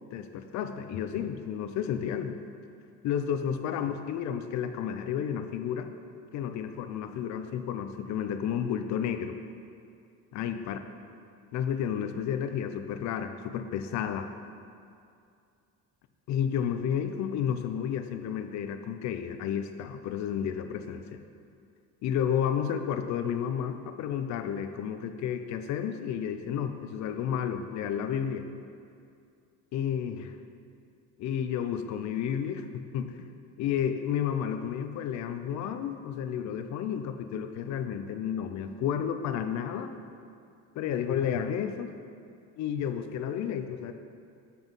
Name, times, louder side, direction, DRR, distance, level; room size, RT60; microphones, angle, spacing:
voice 1, 0.1-2.4 3.0-5.9 6.3-9.4 10.3-10.8 11.5-14.3 16.3-21.2 22.0-28.5 29.7-30.3 31.2-33.2 33.6-39.9 40.8-41.9 42.6-43.9, left 8 dB, 65° left, 8 dB, 0.6 m, -31 dB
7.1 x 6.0 x 5.4 m, 2.4 s
cardioid pair, 135°, 31 cm